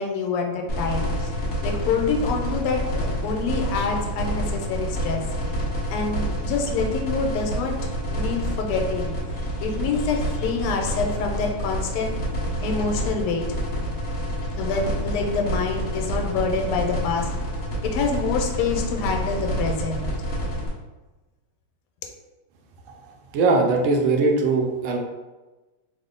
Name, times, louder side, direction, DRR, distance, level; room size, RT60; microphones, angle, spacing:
voice 1, 0.0-1.3 1.6-5.2 5.9-7.7 8.1-12.2 12.6-13.4 14.5-17.3 17.8-20.1, left 4 dB, 90° left, 2 dB, 1.5 m, -26 dB
sound 1, 0.7-20.7, equal, 40° left, 0.7 m, -28 dB
voice 2, 23.3-25.0, right 3 dB, 75° right, 1 dB, 1.3 m, -20 dB
3.7 x 2.1 x 3.7 m, 1.1 s
omnidirectional pair, 2.4 m